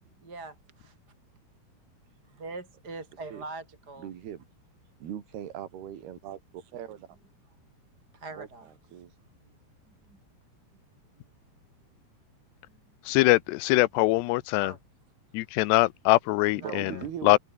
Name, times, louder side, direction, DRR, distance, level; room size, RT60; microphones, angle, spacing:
voice 1, 0.2-0.9 2.3-4.1 8.1-8.7 10.0-10.2 14.6-14.8 16.5-17.1, right 3 dB, 25° right, 3.4 m, -42 dB
voice 2, 4.0-4.4 5.0-7.1 8.3-9.1 16.5-17.4, right 10 dB, 70° right, 4.4 m, -40 dB
voice 3, 13.1-14.7 15.3-16.9 17.2-17.4, left 20 dB, 85° left, 2.8 m, -22 dB
omnidirectional pair, 4.8 m